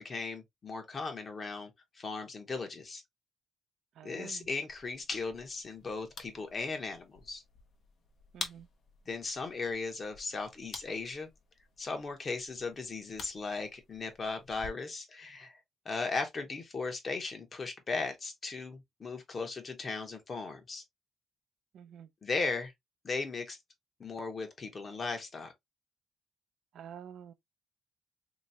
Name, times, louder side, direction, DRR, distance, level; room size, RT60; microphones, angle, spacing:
voice 1, 0.0-3.0 4.0-7.4 9.1-11.3 11.8-15.6 15.8-20.8 22.2-22.7 23.0-23.6 24.0-25.5, left 4 dB, 35° left, 1.1 m, -37 dB
voice 2, 4.0-4.5 8.3-8.7 21.7-22.1 26.7-27.3, right 8 dB, 75° right, 0.5 m, -48 dB
sound 1, 4.7-14.7, left 4 dB, 60° left, 0.9 m, -50 dB
3.3 x 3.0 x 2.7 m
cardioid pair, 120°, 0 cm